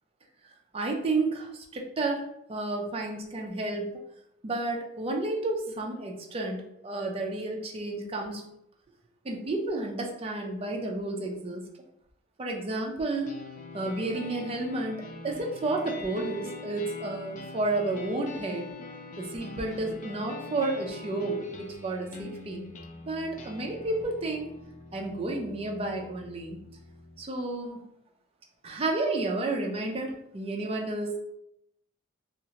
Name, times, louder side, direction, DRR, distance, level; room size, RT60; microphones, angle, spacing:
voice 1, 0.7-3.9 4.4-6.6 6.8-8.4 9.2-11.6 12.4-13.3 13.7-18.7 19.2-22.7 23.1-24.5 24.9-26.6 27.2-27.8 28.6-31.2, right 2 dB, 30° right, 1 dB, 0.4 m, -31 dB
sound 1, 13.3-27.2, left 3 dB, 40° left, 0.3 m, -44 dB
2.8 x 2.4 x 2.8 m, 0.79 s
head